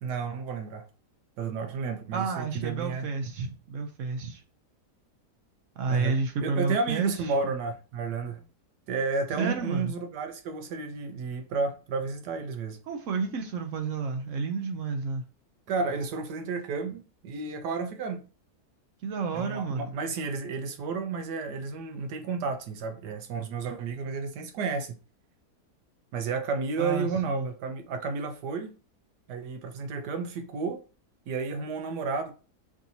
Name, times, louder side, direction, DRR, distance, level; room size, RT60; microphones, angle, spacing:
voice 1, 0.0-0.9 1.4-3.1 5.9-8.4 8.9-12.8 15.7-18.2 19.3-25.0 26.1-28.7 29.3-30.8 31.3-32.3, right 4 dB, 80° right, 1.3 m, -32 dB
voice 2, 2.1-4.4 5.8-7.1 9.4-9.9 12.9-15.2 19.0-19.9 26.8-27.5, right 4 dB, 65° right, 0.8 m, -30 dB
5.9 x 2.8 x 2.7 m
omnidirectional pair, 1.8 m